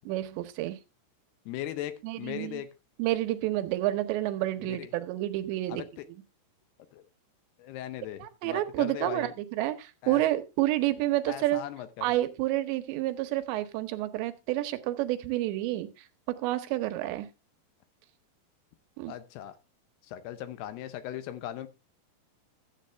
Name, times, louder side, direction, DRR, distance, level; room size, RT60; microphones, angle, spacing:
voice 1, 0.1-0.8 2.0-2.6 3.0-5.8 8.2-11.6 12.0-17.3 19.0-19.1, right 15 dB, 85° right, 3.1 m, -29 dB
voice 2, 1.5-2.7 4.6-4.9 5.7-6.1 6.9-7.0 7.6-9.3 10.0-10.2 11.3-12.1 19.1-19.5 20.0-21.7, left 12 dB, 75° left, 2.7 m, -39 dB
13.0 x 8.5 x 3.3 m
omnidirectional pair, 4.9 m